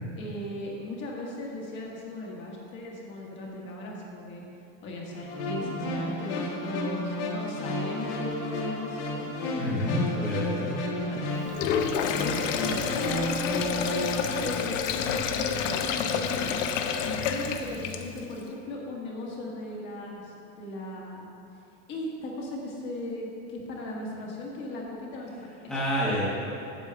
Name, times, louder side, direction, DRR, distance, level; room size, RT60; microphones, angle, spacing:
voice 1, 0.2-4.4 4.8-9.2 10.3-11.2 12.1-16.5 17.0-21.3 21.9-25.9, left 1 dB, 30° left, -3 dB, 1.5 m, -37 dB
sound 1, 5.2-14.4, left 1 dB, 65° left, 2.0 m, -32 dB
voice 2, 9.6-10.7 25.7-26.3, left 1 dB, ahead, -8 dB, 1.2 m, -28 dB
Sink (filling or washing), 11.4-18.3, left 7 dB, 85° left, 0.9 m, -29 dB
8.8 x 7.3 x 6.9 m, 2.7 s
supercardioid pair, 180°, 37 cm